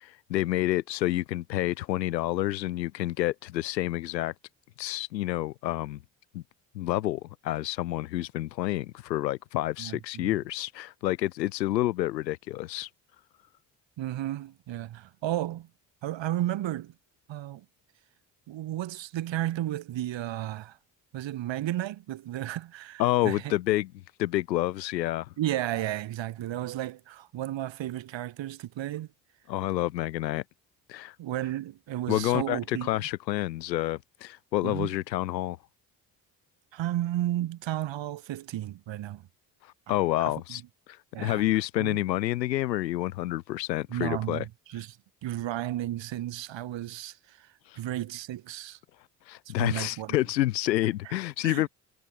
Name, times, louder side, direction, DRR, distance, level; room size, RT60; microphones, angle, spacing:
voice 1, 0.0-4.3 4.8-6.0 6.3-6.4 6.7-12.9 23.0-23.9 24.2-25.3 29.5-30.4 30.9-31.1 32.1-35.6 39.6-40.6 40.9-44.4 47.6-47.8 49.2-51.7, left 15 dB, 80° left, 1.7 m, -29 dB
voice 2, 9.8-10.3 14.0-15.7 16.0-16.9 17.3-17.6 18.5-20.8 21.1-23.5 25.4-29.1 31.2-32.9 34.6-35.0 36.7-39.3 40.2-40.6 41.1-41.4 41.8-42.0 43.9-45.0 45.2-48.8 49.5-50.2 51.1-51.2 51.4-51.7, right 13 dB, 60° right, 5.9 m, -33 dB
figure-of-eight pair, 45°, 50 cm